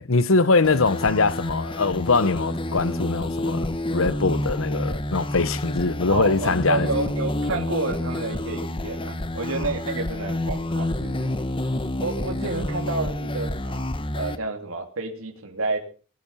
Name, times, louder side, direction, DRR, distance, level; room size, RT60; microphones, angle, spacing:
voice 1, 0.0-6.9, left 3 dB, 80° left, 1.0 m, -22 dB
sound 1, 0.6-14.4, left 1 dB, 25° left, 1.0 m, -29 dB
voice 2, 6.1-11.3 12.0-13.9 14.2-15.8, right 3 dB, 85° right, 3.2 m, -30 dB
21.0 x 11.5 x 5.6 m
head